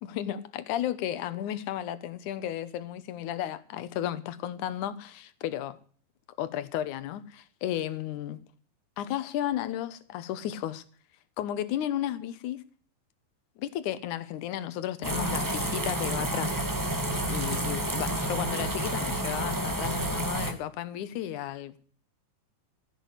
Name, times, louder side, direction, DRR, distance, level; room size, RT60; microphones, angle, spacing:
voice 1, 0.0-5.8 6.4-8.4 9.0-10.8 11.4-12.6 13.6-16.6 17.3-21.8, left 11 dB, 70° left, 2.2 m, -33 dB
sound 1, 15.0-20.5, right 1 dB, 20° right, 0.4 m, -30 dB
15.0 x 8.4 x 8.1 m
omnidirectional pair, 4.1 m